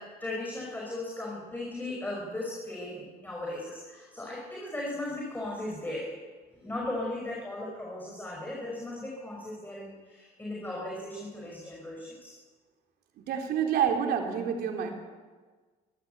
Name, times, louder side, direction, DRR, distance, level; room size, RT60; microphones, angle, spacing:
voice 1, 0.0-6.1 6.6-12.3, left 1 dB, 10° left, -3 dB, 5.6 m, -37 dB
voice 2, 13.3-14.9, right 8 dB, 70° right, 3 dB, 3.5 m, -28 dB
24.0 x 13.5 x 8.2 m, 1.4 s
cardioid pair, 110°, 17 cm